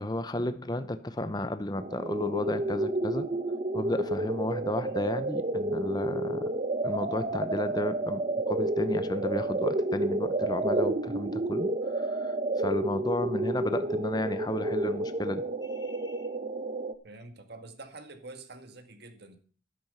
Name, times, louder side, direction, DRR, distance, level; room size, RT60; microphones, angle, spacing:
voice 1, 0.0-3.3 3.7-6.5 6.8-16.3, left 1 dB, 20° left, 0.7 m, -33 dB
sound 1, 1.8-16.9, right 2 dB, 30° right, 0.8 m, -30 dB
voice 2, 17.0-19.4, right 2 dB, 50° right, 2.0 m, -46 dB
12.5 x 10.5 x 5.7 m
head